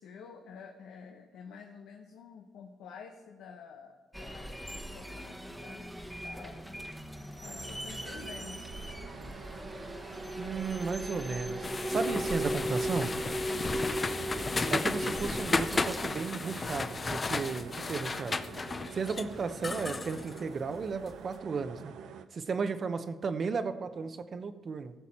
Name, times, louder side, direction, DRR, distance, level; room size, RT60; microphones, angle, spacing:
voice 1, 0.0-6.6 7.3-9.0 13.5-13.8 22.5-22.7, left 6 dB, 85° left, 2 dB, 0.9 m, -50 dB
sound 1, 4.1-16.3, equal, ahead, 1.1 m, -38 dB
sound 2, 7.4-22.2, right 7 dB, 80° right, 0.6 m, -47 dB
voice 2, 10.4-13.1 14.7-18.4 18.9-21.9 22.3-24.9, right 5 dB, 45° right, 11 dB, 0.8 m, -34 dB
sound 3, 11.6-21.2, left 3 dB, 30° left, 0.5 m, -34 dB
16.0 x 6.9 x 4.3 m, 1.4 s
cardioid pair, 90°, 0 cm